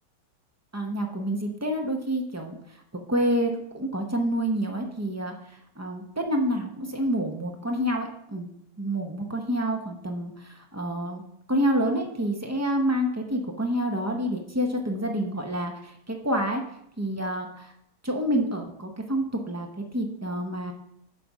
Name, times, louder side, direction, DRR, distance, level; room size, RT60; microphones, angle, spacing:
voice 1, 0.7-2.6 3.1-5.3 5.8-8.5 8.8-11.2 11.5-16.6 17.0-17.7 18.0-19.7 19.9-20.7, equal, 20° right, 2 dB, 0.4 m, -28 dB
8.3 x 4.1 x 6.1 m, 0.75 s
omnidirectional pair, 1.8 m